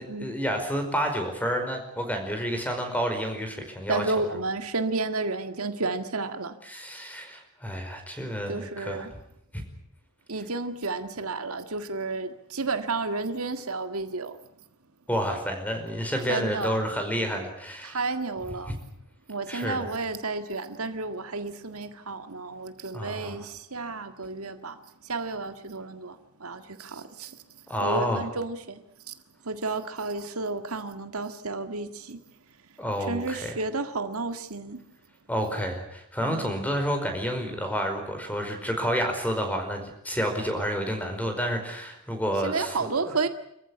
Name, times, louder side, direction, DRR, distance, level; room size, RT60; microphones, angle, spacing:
voice 1, 0.0-4.0 6.6-9.1 9.5-9.6 15.1-18.0 18.7-18.8 19.5-19.9 22.9-23.5 27.7-28.3 29.7-29.8 32.8-33.5 35.3-43.1, equal, 5° left, 5 dB, 5.0 m, -30 dB
voice 2, 3.9-6.6 8.5-9.1 10.3-14.3 16.3-16.8 17.8-18.7 19.3-24.8 25.0-27.4 27.8-28.8 29.1-29.2 29.5-32.2 33.1-34.8 36.3-36.6 42.4-43.3, right 3 dB, 85° right, 8 dB, 1.9 m, -31 dB
26.0 x 15.0 x 10.0 m, 0.81 s
head